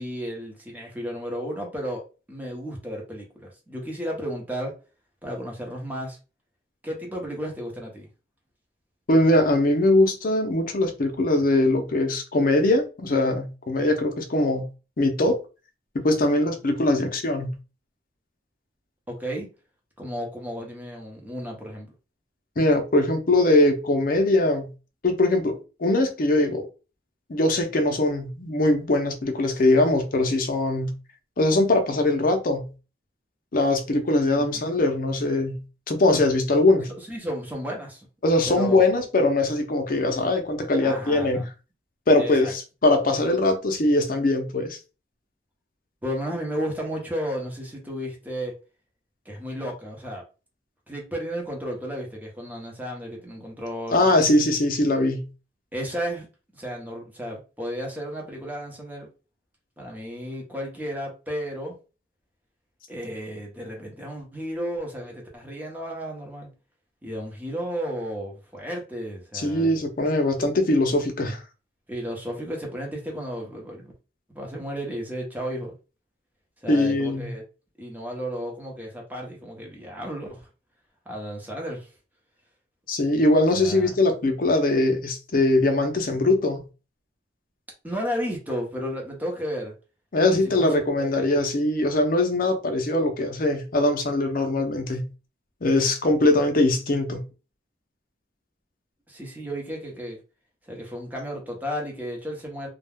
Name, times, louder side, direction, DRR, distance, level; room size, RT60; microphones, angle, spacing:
voice 1, 0.0-2.0 2.3-4.7 5.2-6.2 6.8-8.1 19.1-19.5 20.0-21.9 34.3-34.5 37.1-38.1 38.5-38.8 40.8-41.5 42.2-42.5 46.0-48.5 49.3-50.2 50.9-54.1 55.7-56.3 56.5-59.1 59.8-61.8 62.9-66.5 67.0-69.7 71.9-73.9 74.3-75.7 76.6-77.4 77.8-80.5 81.1-81.9 83.5-83.9 87.8-89.7 90.3-90.8 91.1-91.3 99.1-100.2 100.7-102.7, equal, 10° right, 0.8 m, -33 dB
voice 2, 9.1-14.7 15.0-15.4 16.0-17.6 22.6-24.7 25.0-26.7 27.3-30.9 31.4-32.7 33.5-35.6 35.9-36.9 38.2-41.4 42.1-44.8 53.9-55.3 69.3-71.4 76.7-77.3 82.9-86.6 90.1-95.1 95.6-97.2, left 2 dB, 50° left, 0.6 m, -21 dB
2.3 x 2.2 x 3.3 m
head